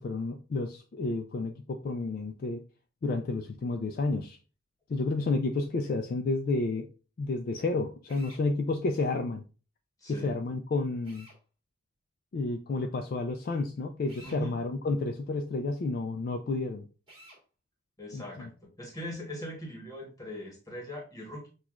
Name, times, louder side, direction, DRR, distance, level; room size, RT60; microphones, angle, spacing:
voice 1, 0.0-2.6 3.0-4.4 4.9-6.9 7.2-9.4 10.1-11.3 12.3-16.8 18.1-18.5, left 3 dB, 45° left, 5 dB, 0.3 m, -31 dB
Drill, 8.1-8.4 11.0-11.4 14.1-14.4 17.1-17.4, equal, 25° right, 1.5 m, -52 dB
voice 2, 10.0-10.3 14.2-14.6 18.0-18.5 18.8-21.5, equal, 20° left, 0 dB, 1.1 m, -40 dB
6.0 x 2.3 x 2.3 m, 0.34 s
head